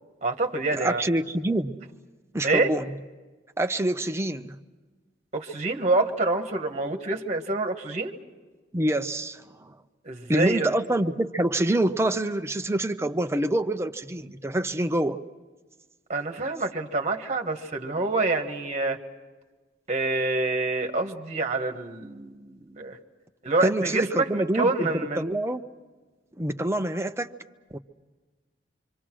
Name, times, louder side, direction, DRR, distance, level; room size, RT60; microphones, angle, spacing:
voice 1, 0.2-1.0 2.4-2.7 5.3-8.1 10.1-10.7 16.1-19.0 19.9-23.0 23.4-25.3, right 2 dB, 40° right, 5 dB, 1.6 m, -27 dB
voice 2, 0.7-1.8 2.3-3.0 3.6-4.6 8.7-9.7 10.3-15.2 23.6-25.6 26.4-27.3 27.7-27.8, right 1 dB, 15° right, 7 dB, 0.7 m, -26 dB
25.5 x 25.5 x 6.2 m, 1.3 s
head